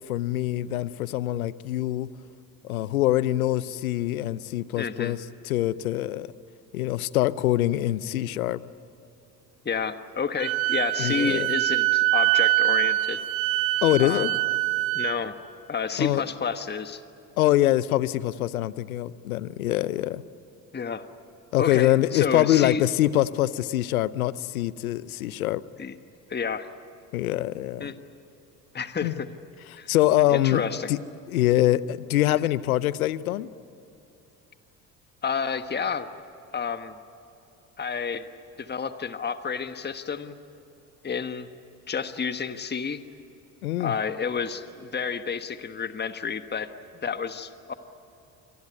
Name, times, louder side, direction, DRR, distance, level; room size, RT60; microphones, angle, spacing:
voice 1, 0.1-2.1 2.6-5.2 5.4-6.3 6.7-8.6 11.0-11.5 13.8-14.3 16.0-16.2 17.4-20.2 21.5-25.6 27.1-27.9 29.0-29.1 29.9-30.6 30.9-31.0 31.3-33.5 43.6-43.9, left 14 dB, 85° left, 18 dB, 0.7 m, -24 dB
voice 2, 4.7-5.2 9.6-13.2 14.0-14.3 14.9-15.3 15.7-17.0 20.7-21.0 21.6-22.8 25.8-25.9 26.3-26.7 27.8-27.9 28.7-29.3 29.8-29.9 30.3-30.9 32.4-32.5 35.2-36.1 36.5-37.0 37.8-38.3 38.6-40.4 41.0-41.5 41.9-43.0 43.8-46.7 47.0-47.7, left 6 dB, 25° left, 10 dB, 1.4 m, -30 dB
Wind instrument woodwind instrument, 10.4-15.1, right 18 dB, 75° right, 1.1 m, -24 dB
27.0 x 20.0 x 9.6 m, 2.9 s
hypercardioid pair, 60°, 42 cm